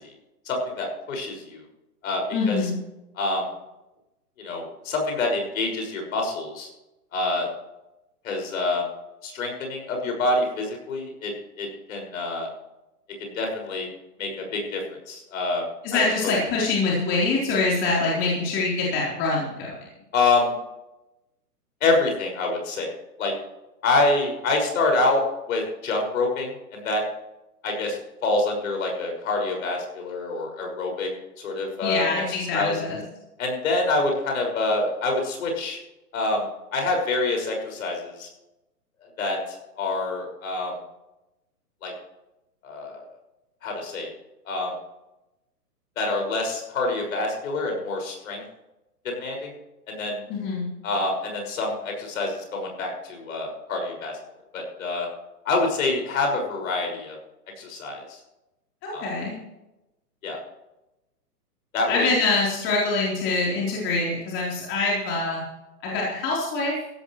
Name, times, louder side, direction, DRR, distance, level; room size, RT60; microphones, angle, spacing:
voice 1, 0.5-1.6 2.0-2.6 3.1-3.5 4.4-6.7 7.1-7.5 8.2-8.9 9.2-11.3 11.6-12.5 13.2-13.9 14.2-14.8 15.1-15.6 15.9-16.3 20.1-20.5 21.8-22.9 23.2-23.3 23.8-27.0 27.6-31.1 31.4-32.8 33.4-35.8 36.1-36.5 36.7-38.3 39.2-40.7 41.8-41.9 42.6-43.1 43.6-44.1 44.5-44.7 46.0-48.4 49.0-49.5 49.9-50.2 50.8-54.2 54.5-55.1 55.4-57.2 57.6-58.2 58.9-59.1 60.2-60.4 61.7-62.1, left 2 dB, 55° left, 2 dB, 6.1 m, -26 dB
voice 2, 2.3-2.7 15.8-19.8 31.8-33.0 50.3-50.7 58.8-59.3 61.9-65.4 65.8-66.8, left 3 dB, 25° left, -4 dB, 4.0 m, -24 dB
16.0 x 13.5 x 3.2 m, 0.94 s
hypercardioid pair, 145°, 48 cm